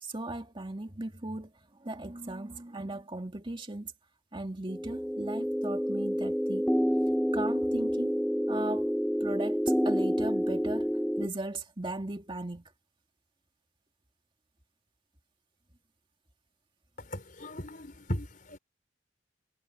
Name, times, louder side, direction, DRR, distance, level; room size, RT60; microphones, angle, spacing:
voice 1, 0.0-1.5 1.8-3.9 4.3-6.7 7.3-8.2 8.5-8.9 9.2-12.7, right 2 dB, 25° right, 2.2 m, -37 dB
sound 1, 4.7-11.3, equal, ahead, 2.1 m, -28 dB
voice 2, 17.0-18.6, equal, 45° left, 4.8 m, -37 dB
head